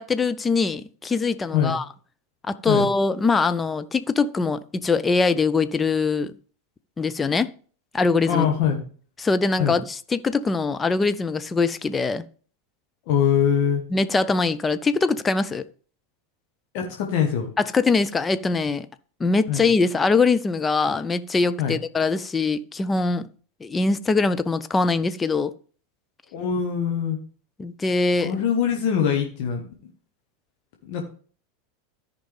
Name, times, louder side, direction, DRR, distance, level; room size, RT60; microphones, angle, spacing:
voice 1, 0.0-1.8 2.5-6.3 7.0-7.5 7.9-8.5 9.2-12.2 13.9-15.6 17.6-18.9 19.2-23.2 23.6-25.5 27.6-28.3, left 4 dB, 15° left, 0.5 m, -22 dB
voice 2, 8.2-8.8 9.6-9.8 13.1-13.8 16.7-17.5 19.5-19.7 21.6-21.8 26.3-27.2 28.2-29.6 30.8-31.0, left 8 dB, 50° left, 1.3 m, -23 dB
13.5 x 5.2 x 3.3 m
figure-of-eight pair, 85°, 0 cm